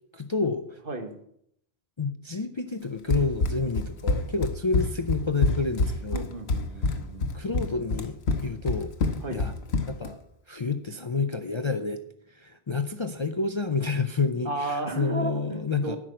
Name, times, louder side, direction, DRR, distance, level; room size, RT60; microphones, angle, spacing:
voice 1, 0.1-0.8 2.0-6.3 7.3-8.9 9.3-9.5 9.9-10.2 10.5-12.0 12.3-16.0, left 4 dB, 35° left, 8 dB, 0.5 m, -29 dB
Run, 3.1-10.1, left 2 dB, 75° left, 1.3 m, -27 dB
voice 2, 6.1-7.2 9.2-9.5 14.5-16.0, right 2 dB, 55° right, 5 dB, 1.7 m, -33 dB
10.5 x 6.2 x 8.9 m, 0.72 s
omnidirectional pair, 1.1 m